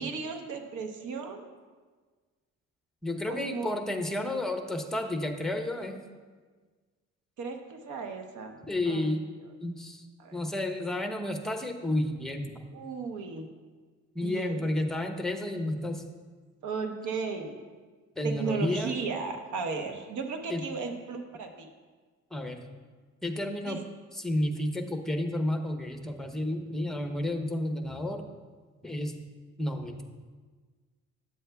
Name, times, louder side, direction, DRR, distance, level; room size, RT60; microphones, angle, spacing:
voice 1, 0.0-1.4 3.3-3.7 7.4-8.5 8.9-9.1 10.2-10.5 12.7-13.5 14.2-14.6 16.6-17.6 18.2-21.7 23.7-23.8, right 4 dB, 75° right, 5 dB, 1.0 m, -35 dB
voice 2, 3.0-6.0 8.6-9.2 9.6-10.0 10.3-12.5 14.1-16.0 18.2-18.9 20.5-20.6 22.3-22.6 23.2-23.8 24.1-28.3 28.8-29.1 29.6-30.0, left 1 dB, ahead, 5 dB, 0.8 m, -31 dB
10.5 x 7.8 x 2.3 m, 1.4 s
cardioid pair, 90°, 30 cm